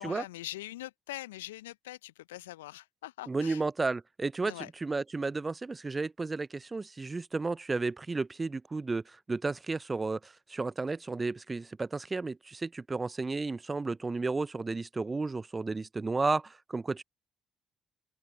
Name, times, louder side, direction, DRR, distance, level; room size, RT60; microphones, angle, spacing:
voice 1, 0.0-3.6 4.4-4.7, left 16 dB, 80° left, 0.6 m, -43 dB
voice 2, 3.3-4.5 4.8-17.0, right 3 dB, 25° right, 0.6 m, -33 dB
open air
figure-of-eight pair, 50°, 0 cm